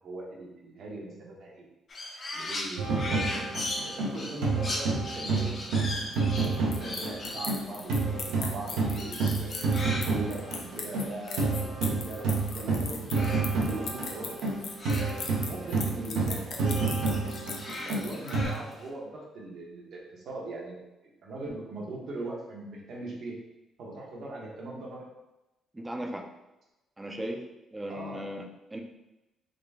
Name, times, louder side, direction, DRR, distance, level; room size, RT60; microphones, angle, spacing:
voice 1, 0.0-1.7 2.3-3.4 3.8-5.5 6.1-12.3 12.5-14.3 14.9-15.2 15.4-20.8 21.2-23.4 23.8-25.1 27.9-28.3, right 2 dB, 65° right, -2 dB, 1.0 m, -40 dB
Crow, 1.9-12.6 12.8-15.9 16.2-18.9, left 1 dB, 45° left, 0.8 m, -39 dB
sound 1, 2.8-7.6 7.9-18.4, right 3 dB, 90° right, 0.8 m, -29 dB
sound 2, 6.0-18.6, left 5 dB, 70° left, 0.5 m, -39 dB
voice 2, 25.7-26.3 27.0-27.4 27.7-28.8, equal, 15° right, 2 dB, 0.5 m, -37 dB
3.8 x 2.2 x 3.4 m, 0.97 s
cardioid pair, 90°, 0 cm